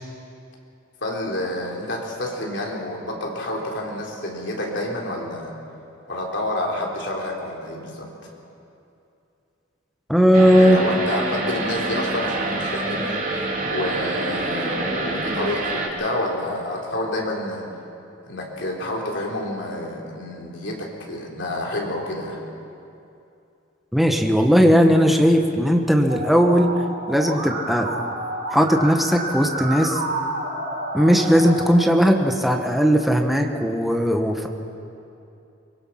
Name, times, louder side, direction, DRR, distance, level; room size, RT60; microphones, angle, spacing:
voice 1, 1.0-5.5 6.1-8.3 10.6-17.6 18.3-22.4, left 1 dB, 65° left, -1 dB, 3.6 m, -28 dB
voice 2, 10.1-10.8 23.9-27.9 28.5-30.0 30.9-34.5, equal, ahead, 2 dB, 1.2 m, -17 dB
sound 1, 10.3-15.9, right 2 dB, 45° right, 2.7 m, -27 dB
Musical instrument, 26.1-31.6, right 2 dB, 85° right, 6.0 m, -30 dB
23.5 x 21.5 x 5.8 m, 2.7 s
head